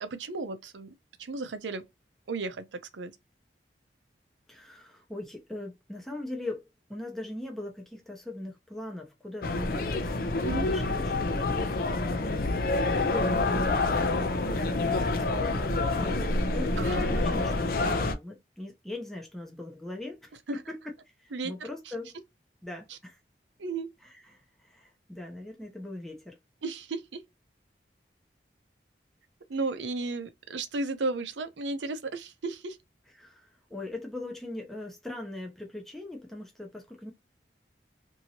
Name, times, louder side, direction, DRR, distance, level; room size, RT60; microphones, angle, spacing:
voice 1, 0.0-0.9 1.2-1.9 2.3-3.2 10.4-10.7 16.8-17.1 20.5-20.6 21.3-21.5 21.9-22.0 22.9-23.0 23.6-23.9 26.6-27.2 29.5-32.8, right 3 dB, 90° right, 0.6 m, -34 dB
voice 2, 4.5-6.6 6.9-10.2 10.5-20.8 21.1-22.2 22.6-23.2 24.0-26.4 33.2-37.1, left 2 dB, ahead, 0.5 m, -40 dB
sound 1, 9.4-18.2, left 2 dB, 50° left, 0.4 m, -27 dB
2.8 x 2.7 x 2.8 m
head